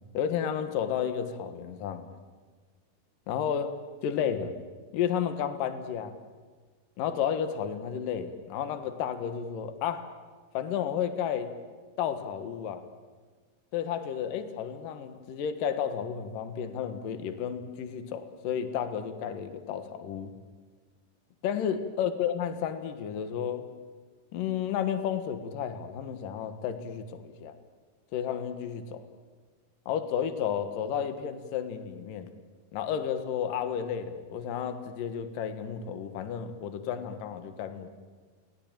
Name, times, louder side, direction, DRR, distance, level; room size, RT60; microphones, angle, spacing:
voice 1, 0.1-2.1 3.3-3.8 4.0-4.6 4.9-6.2 7.0-10.1 10.5-11.5 12.0-12.8 13.7-20.3 21.4-23.7 24.3-27.5 28.1-29.1 29.9-32.3 32.7-37.9, left 8 dB, 60° left, 9 dB, 2.9 m, -32 dB
28.5 x 20.5 x 8.9 m, 1.5 s
omnidirectional pair, 4.7 m